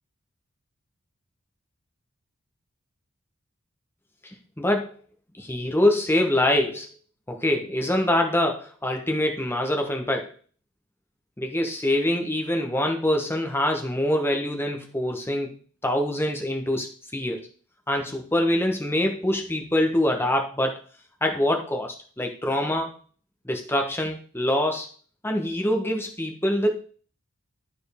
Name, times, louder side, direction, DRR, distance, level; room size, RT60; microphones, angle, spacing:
voice 1, 4.2-4.9 5.4-6.9 7.3-10.3 11.4-15.6 15.8-16.9 17.1-17.5 17.9-20.8 21.2-22.9 23.4-24.9 25.2-26.8, left 1 dB, 10° left, 3 dB, 1.1 m, -24 dB
12.0 x 4.5 x 3.5 m, 0.41 s
head